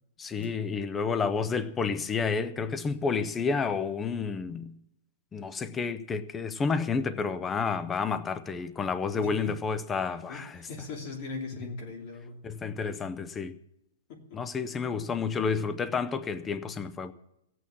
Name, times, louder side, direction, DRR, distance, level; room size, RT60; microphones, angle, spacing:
voice 1, 0.2-4.7 5.3-10.7 11.6-11.7 12.4-13.6 14.3-17.1, left 5 dB, 10° left, 0.5 m, -30 dB
voice 2, 9.2-9.6 10.3-12.4 14.1-14.4, left 3 dB, 30° left, 2.7 m, -40 dB
15.5 x 8.5 x 7.2 m
hypercardioid pair, 180°, 0 cm